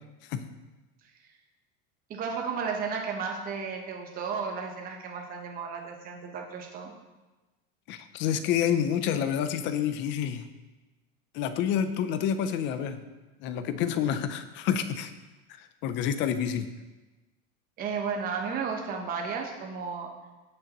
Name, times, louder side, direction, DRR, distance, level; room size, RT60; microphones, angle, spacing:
voice 1, 2.1-6.9 17.8-20.1, right 5 dB, 25° right, 1 dB, 0.9 m, -33 dB
voice 2, 7.9-10.5 11.3-13.0 13.4-15.1 15.6-16.7, left 9 dB, 35° left, 11 dB, 0.5 m, -28 dB
16.5 x 6.4 x 3.0 m, 1.2 s
cardioid pair, 180°, 35 cm